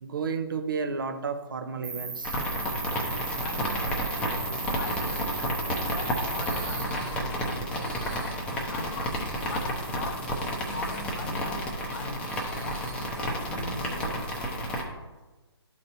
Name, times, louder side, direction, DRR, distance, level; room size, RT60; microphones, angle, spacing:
voice 1, 0.0-2.4 4.5-4.6, right 5 dB, 50° right, 0.8 m, -32 dB
Cricket, 1.8-6.8, right 4 dB, 70° right, 1.3 m, -36 dB
sound 1, 2.2-14.8, equal, 10° left, 0.8 m, -31 dB
voice 2, 3.3-3.9 4.8-5.4 5.8-8.0 8.7-10.4 10.7-14.1, left 3 dB, 40° left, 0.7 m, -41 dB
sound 2, 4.8-5.2 6.4-7.1 7.7-8.4 8.9-9.4 10.3-11.0 12.2-13.1, right 4 dB, 15° right, 1.5 m, -48 dB
12.5 x 4.2 x 2.7 m
figure-of-eight pair, 140°, 14 cm